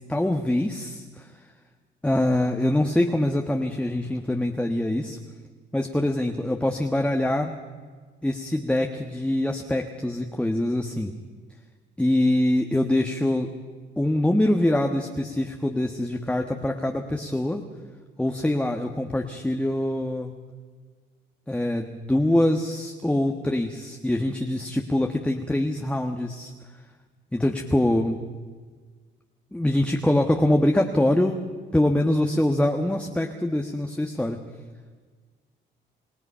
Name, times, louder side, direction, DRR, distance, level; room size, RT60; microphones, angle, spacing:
voice 1, 0.1-1.3 2.0-5.2 5.7-7.5 8.2-11.1 12.0-13.5 14.0-17.6 18.2-20.3 21.5-26.5 27.3-28.2 29.5-31.5 31.7-34.4, left 1 dB, 5° left, 3 dB, 1.5 m, -24 dB
28.0 x 17.5 x 5.7 m, 1.5 s
cardioid pair, 90°, 20 cm